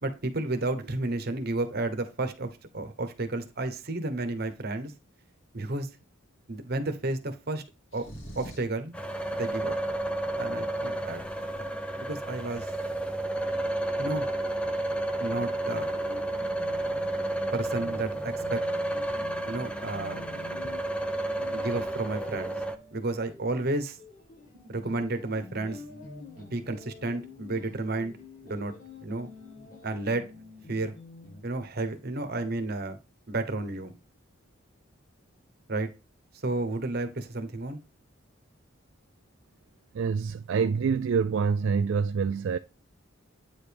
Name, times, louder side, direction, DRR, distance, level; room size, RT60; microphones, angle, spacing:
voice 1, 0.0-4.9 5.5-5.9 6.5-7.6 7.9-8.1 8.3-8.9 9.3-9.8 10.4-11.7 12.0-12.7 14.0-14.3 15.2-15.9 17.5-18.6 19.5-20.3 21.5-22.5 22.9-24.0 24.7-25.8 26.4-28.1 28.4-28.7 29.0-29.3 29.8-30.2 30.7-30.9 31.4-33.0 33.3-33.9 35.7-35.9 36.4-37.8, right 2 dB, 50° right, 1.0 m, -32 dB
sound 1, 7.9-8.8, equal, 65° left, 2.3 m, -43 dB
sound 2, 8.9-22.8, right 1 dB, 5° left, 0.5 m, -31 dB
sound 3, 15.4-31.4, left 3 dB, 40° left, 1.7 m, -48 dB
voice 2, 39.9-42.6, right 5 dB, 65° right, 0.3 m, -26 dB
8.9 x 4.8 x 3.4 m
head